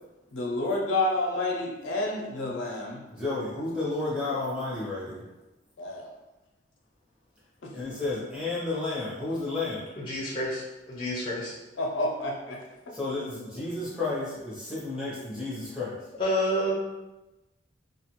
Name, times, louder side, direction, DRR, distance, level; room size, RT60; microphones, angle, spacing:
voice 1, 0.3-3.0 5.8-6.1 7.6-7.7 11.8-12.6 12.9-13.0, left 2 dB, 85° left, -1 dB, 0.6 m, -29 dB
voice 2, 3.1-5.2 7.7-9.8 12.9-16.0, left 2 dB, 5° right, -9 dB, 0.8 m, -32 dB
voice 3, 10.0-10.6 10.9-11.5 16.2-16.7, equal, 25° left, -6 dB, 0.5 m, -28 dB
2.4 x 2.4 x 2.9 m, 1.0 s
head